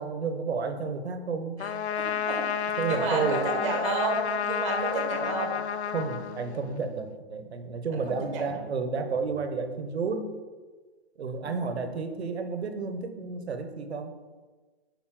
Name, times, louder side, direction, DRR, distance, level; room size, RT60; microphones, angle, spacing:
voice 1, 0.0-1.6 2.8-3.5 5.9-10.4 11.2-14.1, right 5 dB, 75° right, 7 dB, 1.2 m, -31 dB
Trumpet, 1.6-6.9, left 8 dB, 85° left, 0.6 m, -31 dB
voice 2, 2.0-2.4 2.9-5.6 7.9-8.6 11.4-11.7, right 3 dB, 30° right, 2 dB, 1.5 m, -31 dB
8.9 x 5.5 x 3.8 m, 1.4 s
hypercardioid pair, 170°, 33 cm